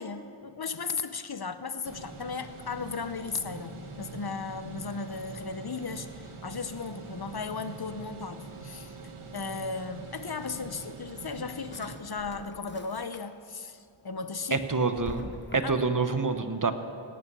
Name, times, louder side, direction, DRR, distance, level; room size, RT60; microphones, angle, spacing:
voice 1, 0.0-9.0 9.3-14.6 15.6-15.9, left 4 dB, 50° left, 11 dB, 0.8 m, -36 dB
sound 1, 1.8-12.0, right 4 dB, 85° right, 1.3 m, -44 dB
Drawer open or close, 11.2-13.6 14.0-16.1, left 2 dB, 20° left, 1.1 m, -47 dB
voice 2, 14.5-15.3 15.5-16.7, right 4 dB, 40° right, 8 dB, 1.0 m, -27 dB
18.0 x 8.7 x 6.9 m, 2.7 s
wide cardioid pair, 50°, 49 cm